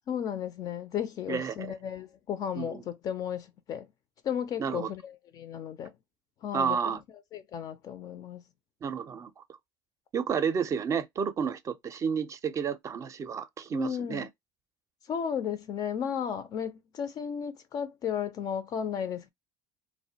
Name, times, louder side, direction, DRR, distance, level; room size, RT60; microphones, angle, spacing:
voice 1, 0.1-3.9 4.2-5.9 6.4-7.0 7.3-8.4 13.7-14.3 15.1-19.3, left 8 dB, 45° left, 0.4 m, -34 dB
voice 2, 1.3-1.7 2.6-2.8 4.6-4.9 6.5-7.0 8.8-9.4 10.1-14.3, right 6 dB, 35° right, 0.4 m, -31 dB
2.3 x 2.1 x 2.7 m
supercardioid pair, 100°, 9 cm